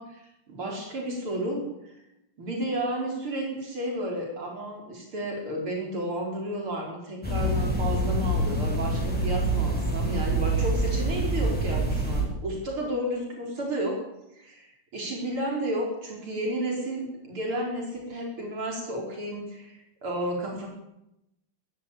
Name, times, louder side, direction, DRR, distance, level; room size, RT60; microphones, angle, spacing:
voice 1, 0.0-1.9 2.4-14.0 14.4-14.7 14.9-20.7, right 1 dB, 90° right, 0 dB, 6.1 m, -32 dB
sound 1, 7.2-12.2, right 1 dB, 5° left, 6.6 m, -26 dB
21.0 x 14.5 x 9.0 m, 0.86 s
omnidirectional pair, 2.3 m